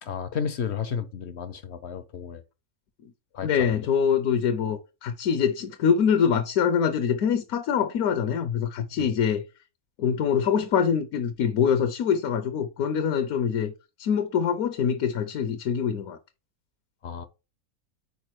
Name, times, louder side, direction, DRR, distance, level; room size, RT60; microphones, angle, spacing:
voice 1, 0.0-2.4 3.3-3.9 8.9-9.1 17.0-17.3, left 7 dB, 60° left, 0.8 m, -33 dB
voice 2, 3.4-9.5 10.0-13.7 14.0-16.2, left 7 dB, 75° left, 1.1 m, -24 dB
5.3 x 4.7 x 4.6 m
omnidirectional pair, 1.6 m